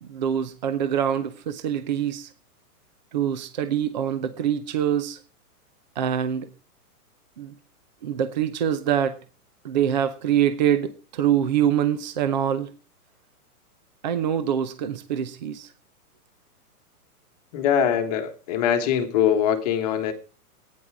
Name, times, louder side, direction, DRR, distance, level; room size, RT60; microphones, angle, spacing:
voice 1, 0.0-2.3 3.1-5.2 6.0-6.5 7.4-7.5 8.0-9.2 9.6-12.7 14.0-15.7, right 9 dB, 30° right, 0.6 m, -24 dB
voice 2, 17.5-20.1, left 9 dB, 25° left, 1.4 m, -22 dB
15.5 x 9.7 x 4.7 m
hypercardioid pair, 175°, 46 cm